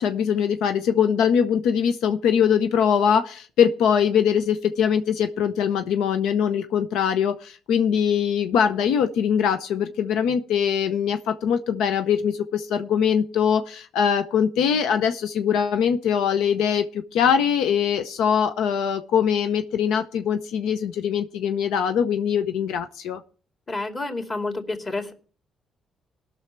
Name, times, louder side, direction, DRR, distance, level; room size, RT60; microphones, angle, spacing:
voice 1, 0.0-23.2, left 8 dB, 90° left, 8 dB, 0.6 m, -22 dB
voice 2, 23.7-25.1, left 2 dB, 30° left, 3 dB, 2.5 m, -29 dB
19.0 x 6.3 x 4.5 m, 0.42 s
cardioid pair, 90°, 0 cm